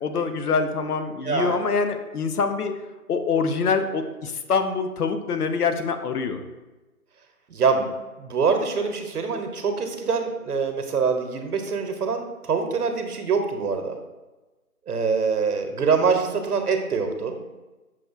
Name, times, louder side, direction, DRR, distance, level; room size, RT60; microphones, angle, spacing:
voice 1, 0.0-2.8 3.1-6.4, left 5 dB, 80° left, 7 dB, 0.6 m, -25 dB
voice 2, 1.2-1.6 7.5-7.9 8.2-14.0 14.9-17.4, right 5 dB, 85° right, 5 dB, 0.7 m, -24 dB
5.9 x 2.3 x 2.4 m, 1.1 s
figure-of-eight pair, 160°, 45 cm